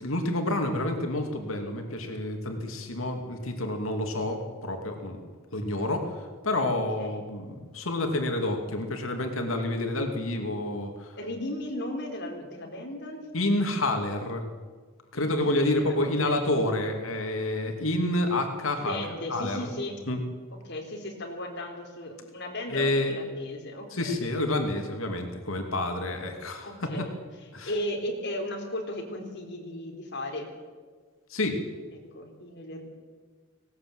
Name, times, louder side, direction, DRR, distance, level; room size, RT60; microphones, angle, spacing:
voice 1, 0.0-5.2 5.5-11.2 13.3-14.4 15.1-19.7 20.1-20.2 22.7-23.1 23.9-27.1 27.5-27.7 31.3-31.6, left 1 dB, 80° left, 5 dB, 2.6 m, -29 dB
voice 2, 11.2-13.3 15.1-16.5 18.8-20.0 20.7-24.2 26.6-27.1 27.6-30.5 32.1-32.9, left 1 dB, 60° left, 2 dB, 4.0 m, -36 dB
18.5 x 18.0 x 7.9 m, 1.5 s
head